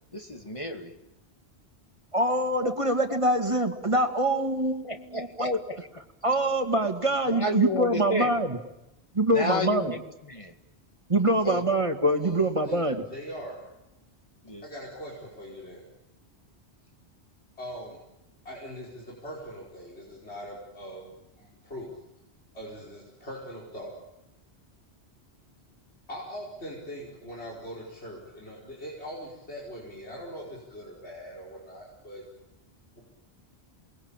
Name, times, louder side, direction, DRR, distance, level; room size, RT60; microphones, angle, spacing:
voice 1, 0.1-0.9 2.6-2.7 4.8-5.8 7.3-8.4 9.3-10.5 11.4-11.6 14.4-14.6, left 1 dB, 30° left, 5 dB, 2.2 m, -32 dB
voice 2, 2.1-5.6 6.2-8.6 9.1-9.9 11.1-13.0, right 1 dB, 30° right, 6 dB, 2.0 m, -24 dB
voice 3, 12.2-12.8 13.1-13.6 14.6-15.8 17.6-18.0 18.4-21.0 21.4-21.9 22.5-23.9 26.1-32.2 33.0-33.1, equal, 80° left, -3 dB, 5.5 m, -41 dB
28.0 x 21.0 x 8.9 m, 0.90 s
omnidirectional pair, 1.1 m